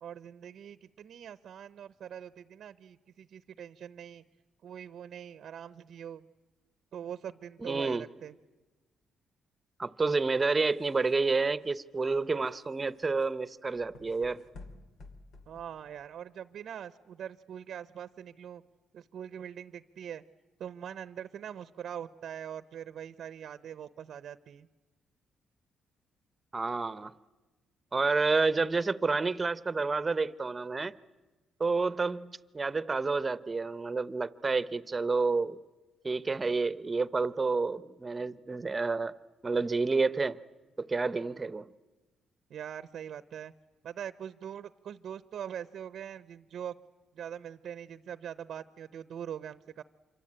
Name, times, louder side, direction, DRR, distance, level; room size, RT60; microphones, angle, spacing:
voice 1, 0.0-4.2 4.6-6.3 6.9-8.3 15.5-18.6 18.9-20.2 20.6-24.7 42.5-43.5 43.8-46.8 47.1-49.8, right 9 dB, 65° right, 14 dB, 0.8 m, -42 dB
voice 2, 7.6-8.1 9.8-14.4 26.5-27.1 27.9-30.9 31.6-35.6 36.0-39.1 39.4-40.4 40.8-41.7, right 4 dB, 25° right, 15 dB, 0.9 m, -29 dB
sound 1, 10.3-16.2, left 3 dB, 80° left, 2.5 m, -54 dB
27.0 x 24.0 x 8.9 m, 1.2 s
cardioid pair, 90°, 0 cm